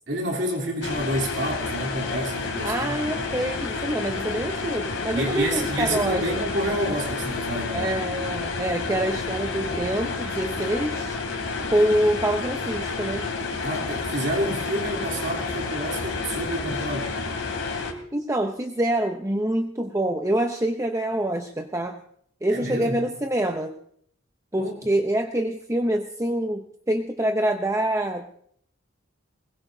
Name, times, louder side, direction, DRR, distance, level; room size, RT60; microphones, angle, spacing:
voice 1, 0.1-3.3 5.1-7.9 13.6-17.2 22.5-23.0 24.6-24.7, right 1 dB, 60° right, 0 dB, 3.3 m, -29 dB
sound 1, 0.8-17.9, left 4 dB, 65° left, 2.8 m, -30 dB
voice 2, 2.6-6.5 7.7-11.2 11.7-13.3 18.1-22.0 22.4-23.7 24.5-28.4, right 1 dB, 15° right, 5 dB, 0.7 m, -26 dB
21.0 x 21.0 x 2.7 m, 0.66 s
head